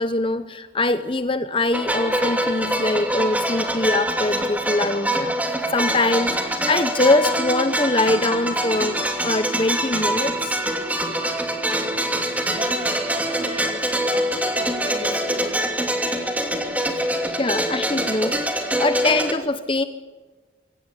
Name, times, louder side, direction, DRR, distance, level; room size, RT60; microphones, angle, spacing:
voice 1, 0.0-10.6 17.0-19.8, left 2 dB, 30° left, 10 dB, 0.9 m, -23 dB
sound 1, 1.7-19.3, right 1 dB, 10° right, 2.8 m, -24 dB
voice 2, 12.4-13.8 14.1-15.6, right 1 dB, 30° right, 2 dB, 4.9 m, -34 dB
26.0 x 18.0 x 9.9 m, 1.3 s
head